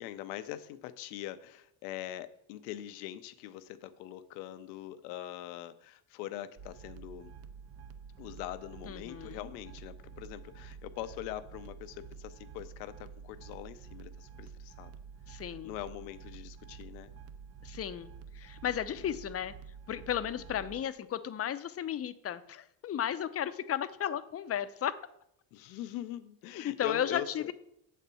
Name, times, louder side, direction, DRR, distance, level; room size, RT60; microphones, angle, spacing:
voice 1, 0.0-7.3 8.2-14.9 15.6-17.1 18.6-18.7 20.3-20.4 25.5-27.5, left 13 dB, 85° left, 12 dB, 0.7 m, -42 dB
sound 1, 6.6-20.9, right 6 dB, 30° right, 0.5 m, -49 dB
voice 2, 8.9-9.5 15.3-15.7 17.6-19.5 19.9-24.9 26.5-27.5, left 10 dB, 30° left, 13 dB, 0.5 m, -34 dB
7.3 x 4.3 x 6.8 m, 0.75 s
supercardioid pair, 85°, 49 cm